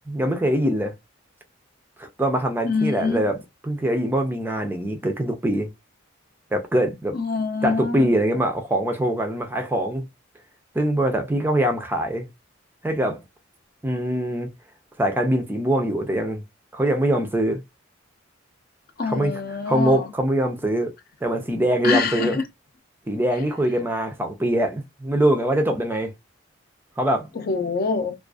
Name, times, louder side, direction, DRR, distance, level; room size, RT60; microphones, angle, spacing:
voice 1, 0.1-0.9 2.0-5.7 6.5-7.2 7.6-10.0 10.7-12.3 12.8-13.2 13.8-14.5 15.0-16.4 16.7-17.6 19.0-20.9 21.2-22.4 23.1-26.1 27.0-27.3, right 1 dB, 10° right, 0.4 m, -23 dB
voice 2, 2.6-3.3 7.1-8.1 19.0-20.1 21.8-22.4 27.4-28.1, left 4 dB, 50° left, 0.5 m, -25 dB
2.4 x 2.3 x 2.3 m
head